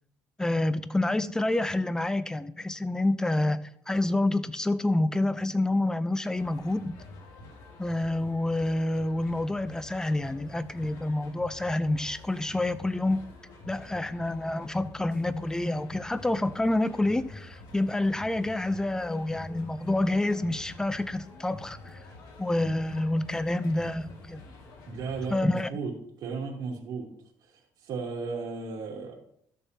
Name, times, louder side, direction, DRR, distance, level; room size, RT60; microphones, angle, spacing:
voice 1, 0.4-7.0 7.8-13.2 13.7-22.0 22.4-24.4 25.3-25.7, left 2 dB, 10° left, 0.6 m, -28 dB
sound 1, 6.4-25.4, left 2 dB, 70° left, 2.2 m, -48 dB
voice 2, 24.9-25.9 26.2-27.1 27.8-29.2, right 4 dB, 65° right, 2.9 m, -34 dB
13.0 x 6.8 x 2.9 m
cardioid pair, 105°, 7 cm